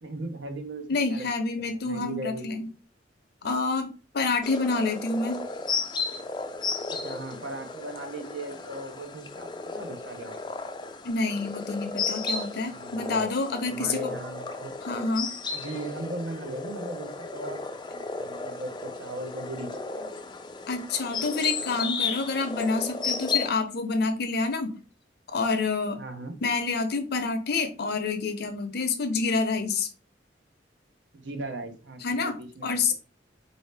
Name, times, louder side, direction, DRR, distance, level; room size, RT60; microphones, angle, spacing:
voice 1, 0.0-1.3 1.6-2.6 6.9-9.5 9.7-10.5 12.7-13.2 13.7-14.8 15.5-20.3 26.0-26.4 31.1-32.9, right 1 dB, 70° right, 5 dB, 0.8 m, -38 dB
voice 2, 0.9-2.6 3.4-5.4 11.0-14.1 14.8-15.3 20.7-24.7 25.3-26.0 26.4-29.9 32.0-32.9, left 3 dB, 60° left, 7 dB, 0.7 m, -28 dB
sound 1, 4.4-23.5, left 4 dB, 25° left, 0.4 m, -34 dB
4.1 x 2.7 x 3.3 m, 0.33 s
head